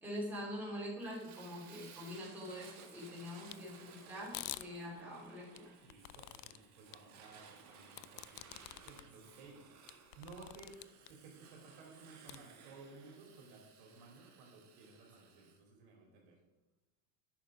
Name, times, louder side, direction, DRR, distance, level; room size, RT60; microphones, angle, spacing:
voice 1, 0.0-5.7, equal, 5° right, -5 dB, 2.8 m, -44 dB
Fire, 1.0-15.6, right 6 dB, 35° right, 1.6 m, -59 dB
sound 1, 3.5-3.6 4.3-4.7 5.6-6.6 6.9-7.0 8.0-9.0 9.5-9.6 9.9-11.1 12.3-12.4, left 19 dB, 70° left, 0.5 m, -47 dB
voice 2, 5.8-9.6 10.2-10.8 11.1-16.4, right 4 dB, 55° right, 0 dB, 2.9 m, -56 dB
9.5 x 5.8 x 4.9 m, 1.1 s
supercardioid pair, 135°, 48 cm